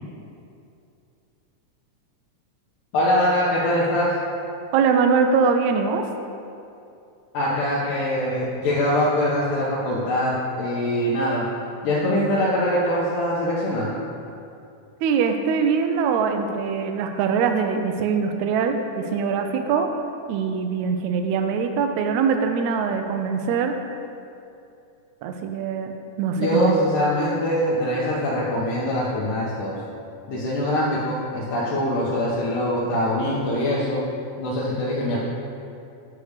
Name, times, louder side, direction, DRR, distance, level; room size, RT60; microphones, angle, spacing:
voice 1, 2.9-4.2 7.3-11.5 11.8-14.0 26.4-29.8 30.3-34.0 34.4-35.2, left 1 dB, 80° left, -7 dB, 2.4 m, -23 dB
voice 2, 4.7-6.1 15.0-19.9 20.3-23.8 25.2-26.7, right 6 dB, 85° right, 5 dB, 1.7 m, -22 dB
8.4 x 3.3 x 6.4 m, 2.6 s
omnidirectional pair, 3.8 m